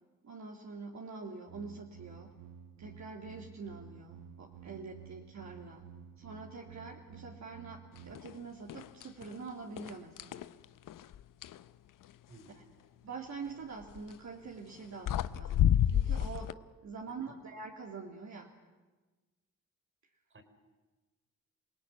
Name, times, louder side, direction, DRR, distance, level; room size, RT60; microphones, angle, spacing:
voice 1, 0.2-2.3 2.8-5.9 6.2-10.4 13.0-18.5, right 4 dB, 55° right, -1 dB, 3.1 m, -45 dB
sound 1, 1.5-8.1, right 8 dB, 75° right, 2.0 m, -52 dB
sound 2, 8.1-8.4 8.7-9.3 9.8-11.6 13.8-14.1 14.8-14.9 15.1-16.5, left 10 dB, 75° left, 0.8 m, -30 dB
voice 2, 17.1-17.4 20.3-20.4, right 1 dB, 35° right, 8 dB, 4.9 m, -56 dB
28.0 x 18.0 x 9.8 m, 1.2 s
supercardioid pair, 55°, 33 cm